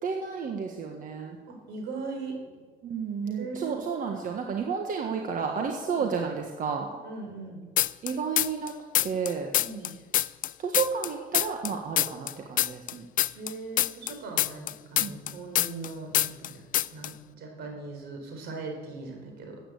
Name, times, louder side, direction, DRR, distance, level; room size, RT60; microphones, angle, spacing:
voice 1, 0.0-1.4 2.8-6.9 8.0-8.7 9.0-9.5 10.6-13.0 15.0-15.1, right 6 dB, 50° right, 3 dB, 1.6 m, -31 dB
voice 2, 1.5-2.6 3.3-3.9 5.9-6.1 7.0-7.6 9.6-10.0 13.3-19.6, right 3 dB, 80° right, 3 dB, 4.4 m, -39 dB
sound 1, 7.8-8.7 9.0-11.7 12.0-15.9 16.1-16.5 16.7-17.1, left 13 dB, 55° left, 0.4 m, -25 dB
14.0 x 8.9 x 8.4 m, 1.4 s
cardioid pair, 110°, 17 cm